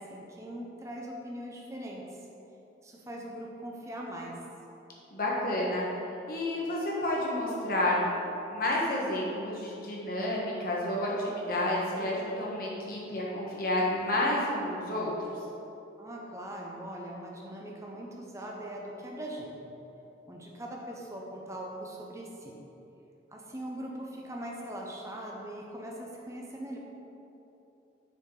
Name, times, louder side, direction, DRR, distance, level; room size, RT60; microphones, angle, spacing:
voice 1, 0.0-2.1 2.8-4.4 16.0-19.7 20.3-22.6 23.3-26.8, right 1 dB, 15° right, -1 dB, 0.7 m, -41 dB
voice 2, 5.1-5.8 6.3-8.0 8.5-15.1, left 1 dB, 50° left, -4 dB, 1.3 m, -30 dB
6.6 x 4.2 x 4.8 m, 2.9 s
head